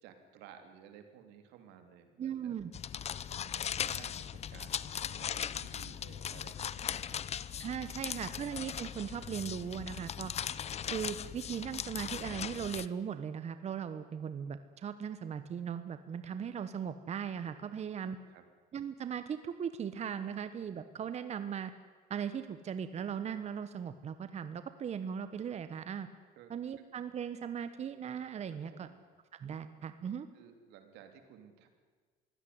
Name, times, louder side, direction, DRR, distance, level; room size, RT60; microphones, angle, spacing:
voice 1, 0.0-2.6 3.4-7.2 7.9-8.3 18.0-18.4 26.4-26.5 28.7-29.0 30.3-31.7, right 8 dB, 85° right, 7 dB, 3.1 m, -56 dB
voice 2, 2.2-2.7 7.6-10.3 10.9-18.2 18.7-21.7 22.1-26.1 26.5-28.9 29.4-30.3, right 8 dB, 40° right, 11 dB, 1.1 m, -38 dB
sound 1, 2.7-12.9, left 9 dB, 40° left, 0.7 m, -39 dB
23.0 x 16.5 x 9.6 m, 1.5 s
cardioid pair, 105°, 17 cm